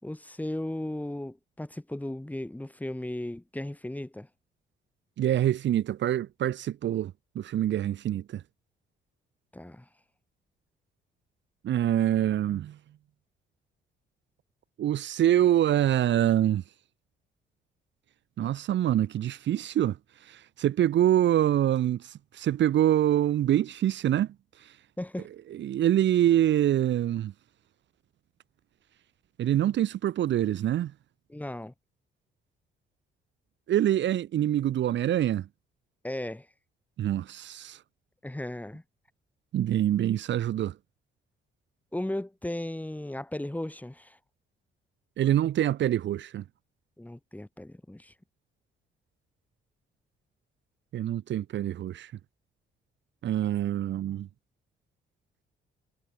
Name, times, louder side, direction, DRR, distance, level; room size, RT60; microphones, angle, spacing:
voice 1, 0.0-4.3 9.5-9.9 25.0-25.3 31.3-31.7 36.0-36.5 38.2-38.8 41.9-44.2 47.0-48.1, left 1 dB, 10° left, 6.3 m, -36 dB
voice 2, 5.2-8.4 11.6-12.8 14.8-16.6 18.4-20.0 20.2-24.3 25.5-27.3 29.4-30.9 33.7-35.5 37.0-37.8 39.5-40.7 45.2-46.4 50.9-52.1 53.2-54.3, right 12 dB, 65° right, 1.0 m, -25 dB
cardioid pair, 90°, 20 cm